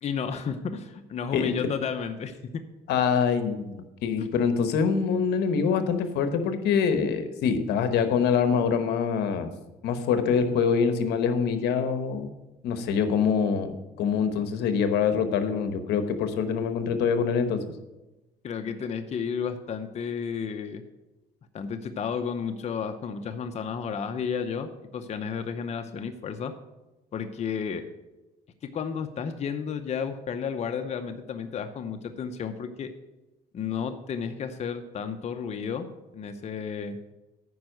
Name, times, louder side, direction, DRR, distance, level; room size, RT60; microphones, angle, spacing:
voice 1, 0.0-2.6 4.2-4.3 18.4-20.8 21.5-26.5 27.1-27.9 28.7-32.9 33.5-35.9 36.1-37.0, left 6 dB, 40° left, 7 dB, 0.7 m, -32 dB
voice 2, 2.9-9.5 9.8-12.3 12.6-17.6, left 6 dB, 80° left, 9 dB, 1.1 m, -25 dB
9.4 x 5.3 x 7.7 m, 1.0 s
cardioid pair, 110°, 17 cm